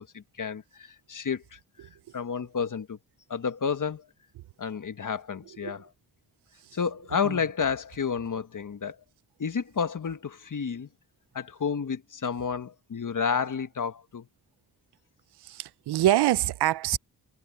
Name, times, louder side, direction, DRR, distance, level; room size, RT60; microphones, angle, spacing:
voice 1, 0.0-3.0 3.3-4.1 4.6-5.9 6.7-9.0 9.4-10.9 11.3-14.3, left 6 dB, 50° left, 1.6 m, -31 dB
voice 2, 15.4-17.0, right 13 dB, 85° right, 0.6 m, -25 dB
cardioid pair, 55°, 39 cm